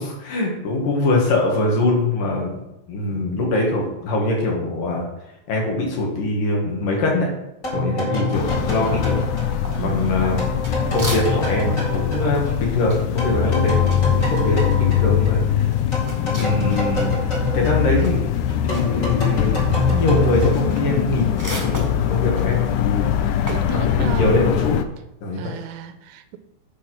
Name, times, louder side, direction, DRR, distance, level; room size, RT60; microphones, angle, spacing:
voice 1, 0.0-5.1 5.5-7.3 7.7-9.2 9.8-10.4 10.9-15.7 16.3-17.1 17.5-18.2 18.6-23.1 23.7-24.8 25.2-25.5, left 2 dB, 65° left, -1 dB, 3.5 m, -23 dB
sound 1, 7.6-12.9 13.2-21.4, left 2 dB, 25° left, 2.0 m, -27 dB
sound 2, 8.3-24.8, left 9 dB, 85° left, 1.8 m, -22 dB
sound 3, 9.6-11.6 11.9-17.2 17.5-23.7, right 1 dB, 10° right, 0.9 m, -37 dB
voice 2, 9.8-10.2 23.5-24.4 25.4-26.4, right 10 dB, 85° right, 10 dB, 2.5 m, -33 dB
9.9 x 5.1 x 6.2 m, 0.89 s
omnidirectional pair, 4.3 m